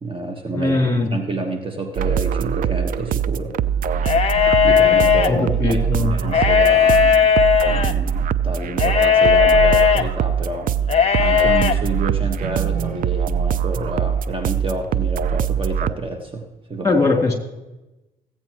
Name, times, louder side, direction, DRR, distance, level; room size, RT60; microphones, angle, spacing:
voice 1, 0.0-0.8 1.1-3.6 4.6-7.3 7.6-10.7 11.2-17.0, right 2 dB, 30° right, 4 dB, 1.3 m, -29 dB
voice 2, 0.5-1.1 5.3-6.1 16.8-17.3, left 3 dB, 20° left, 1 dB, 3.2 m, -19 dB
sound 1, 1.9-15.9, right 8 dB, 60° right, 0.5 m, -22 dB
sound 2, 4.0-5.3 6.2-7.9 8.8-10.0 10.8-11.7, left 7 dB, 40° left, 0.9 m, -16 dB
15.5 x 8.8 x 3.0 m, 1.0 s
supercardioid pair, 80°, 16 cm